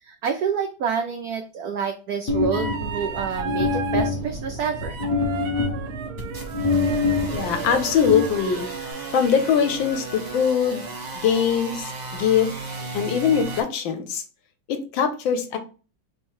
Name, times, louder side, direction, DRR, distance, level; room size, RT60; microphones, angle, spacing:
voice 1, 0.0-5.0, right 7 dB, 85° right, 5 dB, 0.8 m, -28 dB
sound 1, 2.3-8.9, left 3 dB, 45° left, 1.1 m, -26 dB
sound 2, 2.5-4.1 4.6-10.5 12.7-13.6, right 7 dB, 70° right, 1.1 m, -35 dB
sound 3, 6.2-13.6, right 2 dB, 30° right, 0.8 m, -35 dB
voice 2, 7.3-8.6 9.1-10.9 11.1-12.5 12.9-14.2 14.7-15.6, left 7 dB, 75° left, 7 dB, 1.4 m, -22 dB
3.5 x 3.2 x 4.6 m, 0.35 s
omnidirectional pair, 2.3 m